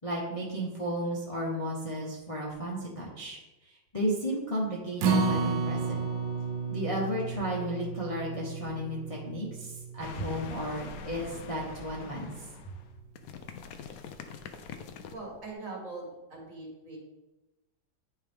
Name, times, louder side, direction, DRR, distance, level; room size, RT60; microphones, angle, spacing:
voice 1, 0.0-3.4 3.9-6.1 6.7-12.3, equal, 25° left, -5 dB, 0.9 m, -33 dB
Acoustic guitar, 5.0-11.3 11.7-11.8 12.2-12.3, right 5 dB, 75° right, 1.4 m, -32 dB
sound 1, 10.0-15.1, left 7 dB, 70° left, 0.8 m, -44 dB
voice 2, 15.1-17.0, right 2 dB, 45° right, -3 dB, 2.0 m, -41 dB
9.6 x 4.7 x 3.5 m, 1.1 s
omnidirectional pair, 2.1 m